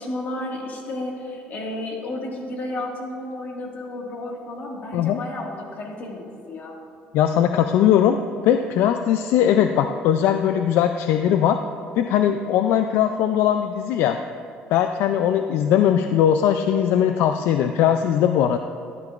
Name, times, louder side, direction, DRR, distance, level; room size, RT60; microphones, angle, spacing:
voice 1, 0.0-6.7, left 1 dB, 50° left, 0 dB, 1.8 m, -32 dB
voice 2, 7.1-8.2 8.4-11.6 12.0-14.2 14.7-18.6, left 10 dB, 75° left, 7 dB, 0.4 m, -19 dB
12.5 x 10.5 x 2.5 m, 2.4 s
cardioid pair, 105°, 4 cm